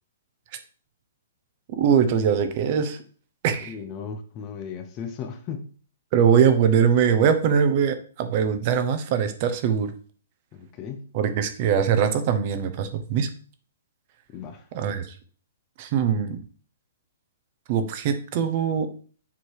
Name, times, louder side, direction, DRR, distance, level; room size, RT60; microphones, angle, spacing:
voice 1, 1.8-3.0 3.4-3.8 6.1-9.9 11.1-13.3 14.7-15.1 15.8-16.4 17.7-18.9, right 7 dB, 35° right, 0.8 m, -22 dB
voice 2, 3.6-5.7 10.5-11.1 14.3-14.7, left 6 dB, 20° left, 0.7 m, -36 dB
7.0 x 3.3 x 4.7 m
hypercardioid pair, 170°, 0 cm